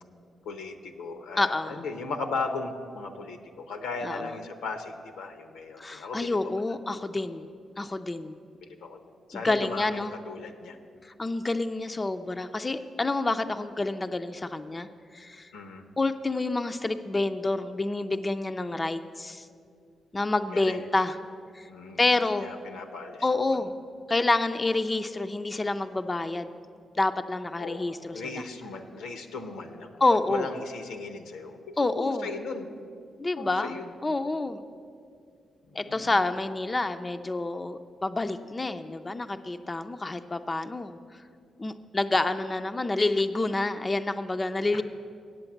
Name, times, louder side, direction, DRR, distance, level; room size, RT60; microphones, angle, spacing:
voice 1, 0.4-6.8 8.6-9.0 9.3-10.8 15.5-15.8 20.5-20.8 21.7-23.6 27.6-29.9 30.3-32.7 33.4-33.9 35.7-36.2 44.7-44.8, left 4 dB, 85° left, 6 dB, 0.7 m, -37 dB
voice 2, 1.4-1.8 4.0-4.2 5.8-7.5 7.8-8.4 9.4-10.1 11.0-14.9 15.1-15.5 16.0-19.5 20.1-21.2 21.5-21.7 22.0-22.5 23.2-23.7 24.1-26.5 27.0-28.4 30.0-30.4 31.8-32.3 33.2-33.8 34.0-34.6 35.7-41.0 41.6-44.8, left 2 dB, 30° left, 8 dB, 0.4 m, -28 dB
8.3 x 7.9 x 7.1 m, 2.4 s
supercardioid pair, 50°, 0 cm